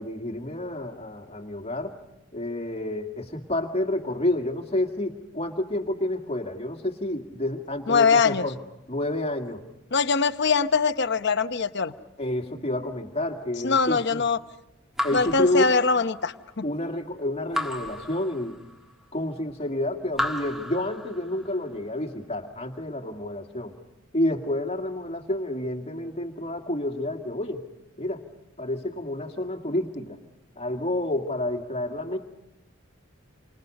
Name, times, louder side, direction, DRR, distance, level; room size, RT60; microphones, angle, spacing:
voice 1, 0.0-2.0 2.3-8.6 8.9-9.6 12.2-14.2 15.0-15.7 16.6-18.6 19.1-23.8 24.1-27.6 28.0-28.2 28.6-30.2 30.6-32.2, left 1 dB, 30° left, 3 dB, 2.2 m, -29 dB
voice 2, 7.9-8.5 9.9-11.9 13.6-14.4 15.1-16.6, left 5 dB, 60° left, 10 dB, 0.9 m, -22 dB
Raindrop / Drip, 15.0-16.3 17.5-18.9 20.1-21.5, left 1 dB, ahead, 1.5 m, -33 dB
29.0 x 25.5 x 5.4 m, 0.88 s
head